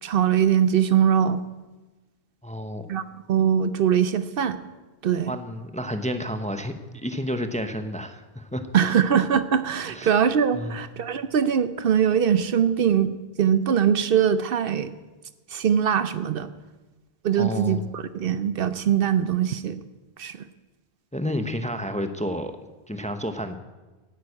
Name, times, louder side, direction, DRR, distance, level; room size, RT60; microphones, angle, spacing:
voice 1, 0.0-1.4 2.9-3.0 3.3-4.6 5.0-5.3 8.7-14.9 15.5-16.5 17.2-19.8 20.2-20.4, right 8 dB, 65° right, 13 dB, 0.8 m, -22 dB
voice 2, 2.4-2.9 5.3-8.7 9.9-10.1 10.5-10.8 17.4-17.9 21.1-22.5 22.9-23.6, equal, 10° left, 8 dB, 0.7 m, -30 dB
11.0 x 9.6 x 8.5 m, 1.2 s
omnidirectional pair, 1.0 m